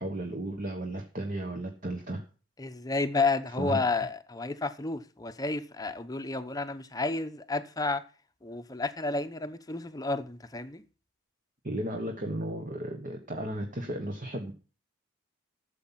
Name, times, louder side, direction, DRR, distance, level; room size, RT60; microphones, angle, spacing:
voice 1, 0.0-2.2 3.6-3.8 11.6-14.5, right 1 dB, 40° right, 1.3 m, -34 dB
voice 2, 2.6-8.0 8.4-10.8, left 3 dB, 20° left, 0.8 m, -31 dB
13.0 x 7.2 x 5.7 m
head